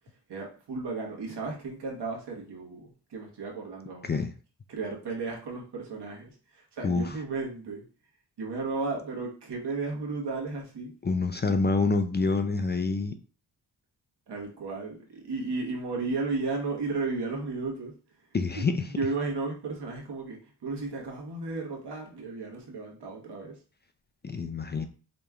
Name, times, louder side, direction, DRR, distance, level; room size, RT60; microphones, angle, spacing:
voice 1, 0.3-4.2 4.7-7.8 8.4-10.9 14.3-18.0 18.5-18.6 18.9-23.6, right 3 dB, 80° right, -1 dB, 1.4 m, -34 dB
voice 2, 11.0-13.1 18.3-18.9 24.2-24.8, left 4 dB, 25° left, 7 dB, 0.4 m, -27 dB
5.1 x 3.0 x 2.4 m, 0.37 s
wide cardioid pair, 115°, 41 cm